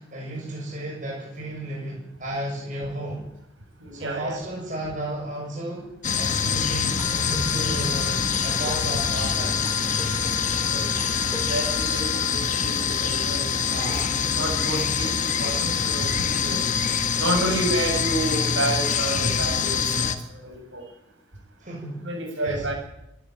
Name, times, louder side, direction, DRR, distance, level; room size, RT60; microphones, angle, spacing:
voice 1, 0.0-3.3 3.9-5.9 6.2-9.8 13.7-14.2 21.6-22.1 22.4-22.7, right 1 dB, 40° right, -3 dB, 7.0 m, -33 dB
voice 2, 3.8-4.4 10.7-10.8 11.5-13.4 13.8-13.9 14.3-16.6 17.2-20.1 20.4-20.8 22.0-22.7, right 1 dB, 65° right, 2 dB, 7.3 m, -29 dB
sound 1, 6.0-20.2, left 6 dB, 35° left, 1.4 m, -25 dB
sound 2, 7.0-12.3, left 2 dB, ahead, 5.4 m, -38 dB
25.5 x 12.0 x 9.1 m, 0.82 s
head